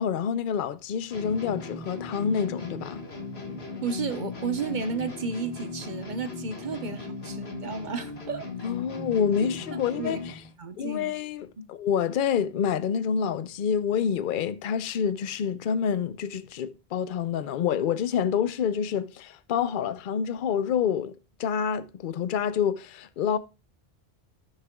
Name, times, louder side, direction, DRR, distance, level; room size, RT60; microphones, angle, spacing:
voice 1, 0.0-3.0 8.6-10.4 10.8-21.1 21.4-23.4, left 7 dB, 60° left, 0.7 m, -27 dB
sound 1, 1.1-10.5, left 3 dB, 80° left, 2.0 m, -38 dB
voice 2, 3.8-8.7 9.4-10.2 10.6-11.2 11.6-11.7, right 5 dB, 50° right, 1.0 m, -33 dB
15.0 x 6.6 x 2.3 m
omnidirectional pair, 1.1 m